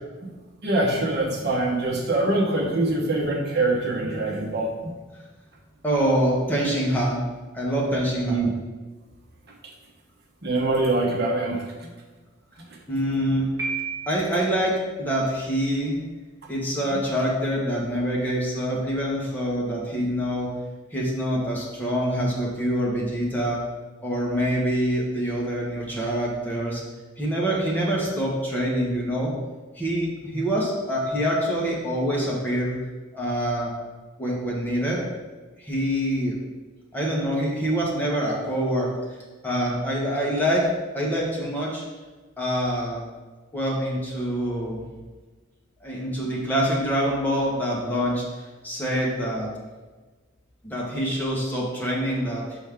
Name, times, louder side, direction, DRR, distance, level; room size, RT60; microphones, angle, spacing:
voice 1, 0.6-4.9 8.3-8.5 10.4-11.9, right 2 dB, 55° right, -1 dB, 1.0 m, -24 dB
voice 2, 5.8-7.2 7.5-8.5 12.9-13.5 14.1-15.9 16.5-20.5 20.9-23.6 24.0-26.8 27.2-29.3 29.7-32.8 33.1-33.7 34.2-35.0 35.6-36.4 36.9-38.9 39.4-40.7 40.9-41.8 42.4-43.0 43.5-44.8 45.8-48.2 48.6-49.5 50.6-52.6, equal, 10° left, -5 dB, 1.3 m, -25 dB
Piano, 13.6-14.5, right 5 dB, 15° right, 1.8 m, -32 dB
6.1 x 5.5 x 3.6 m, 1.3 s
head